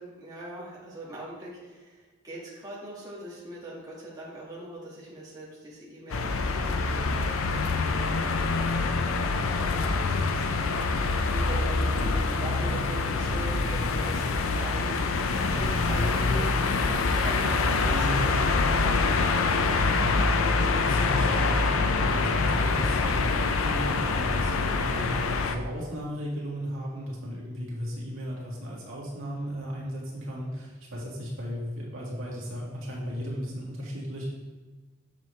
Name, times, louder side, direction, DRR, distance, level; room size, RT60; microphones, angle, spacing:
voice 1, 0.0-7.1 7.8-8.4 8.6-8.9 9.2-10.5 11.3-18.5, right 1 dB, 20° right, -7 dB, 1.8 m, -41 dB
sound 1, 6.1-25.5, left 3 dB, 85° left, 0.5 m, -25 dB
voice 2, 17.9-18.4 20.4-34.3, equal, 80° right, -4 dB, 2.0 m, -35 dB
7.2 x 6.7 x 3.2 m, 1.3 s
head